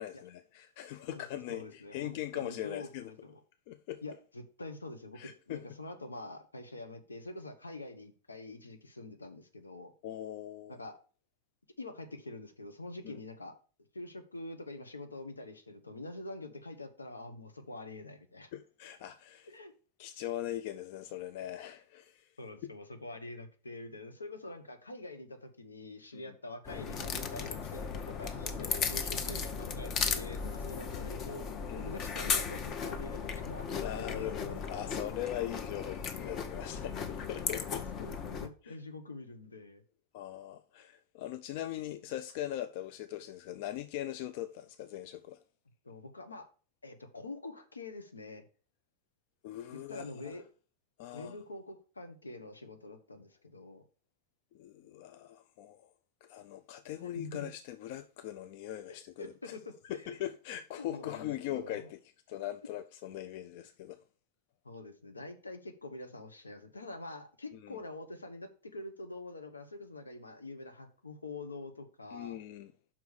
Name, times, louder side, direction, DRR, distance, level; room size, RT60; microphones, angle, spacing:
voice 1, 0.0-3.1 3.7-4.0 5.1-5.7 10.0-10.8 13.0-13.2 18.5-19.5 20.0-22.3 22.6-22.7 26.1-26.3 31.7-32.0 33.8-37.9 38.6-38.8 40.1-45.4 49.4-50.4 51.0-51.4 54.5-55.9 56.2-59.6 59.8-62.0 62.3-64.0 67.6-67.8 72.1-72.7, left 12 dB, 50° left, 0.4 m, -41 dB
voice 2, 1.5-3.4 4.0-9.9 10.7-10.9 11.8-13.5 13.9-18.5 19.5-19.7 22.4-31.4 31.7-33.7 34.0-34.8 37.9-39.8 45.8-46.5 46.8-48.4 49.7-50.4 51.1-53.8 57.0-57.5 58.9-60.2 60.8-61.8 64.6-72.4, left 2 dB, 80° left, 1.0 m, -45 dB
sound 1, 26.6-38.5, left 6 dB, 30° left, 0.9 m, -36 dB
5.8 x 4.7 x 6.3 m
figure-of-eight pair, 90°, 0 cm